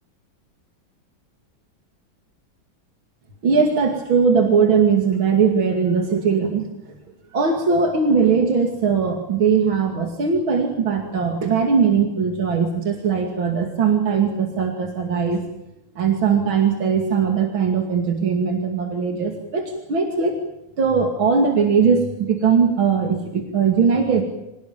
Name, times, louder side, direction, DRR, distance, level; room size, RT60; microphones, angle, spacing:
voice 1, 3.4-6.6 7.3-15.4 16.0-20.4 20.8-24.2, right 6 dB, 80° right, 3 dB, 3.2 m, -20 dB
25.5 x 19.5 x 7.4 m, 0.88 s
omnidirectional pair, 2.2 m